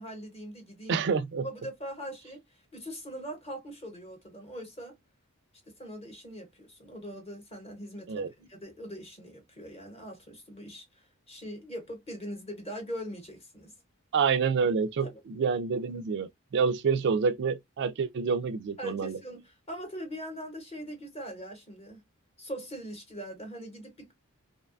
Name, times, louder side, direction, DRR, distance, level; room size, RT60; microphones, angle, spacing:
voice 1, 0.0-1.1 1.4-5.0 5.7-13.7 15.0-15.2 18.8-22.0 22.4-24.1, equal, 30° left, 0.9 m, -41 dB
voice 2, 0.9-1.5 8.1-8.3 14.1-19.2, right 5 dB, 50° right, 0.3 m, -28 dB
2.7 x 2.2 x 2.4 m
head